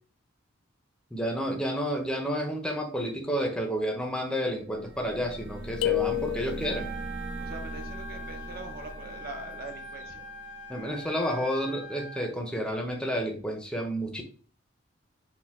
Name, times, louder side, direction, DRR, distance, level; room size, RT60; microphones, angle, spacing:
voice 1, 1.1-6.9 10.7-14.2, equal, 5° left, 3 dB, 0.6 m, -30 dB
sound 1, 4.6-11.3, right 2 dB, 85° right, 0.9 m, -41 dB
sound 2, 5.8-6.9, left 17 dB, 75° left, 0.4 m, -29 dB
Trumpet, 6.5-12.3, equal, 35° right, 0.9 m, -43 dB
voice 2, 7.4-10.3, right 2 dB, 50° right, 5 dB, 0.7 m, -43 dB
4.3 x 2.2 x 3.4 m, 0.43 s
head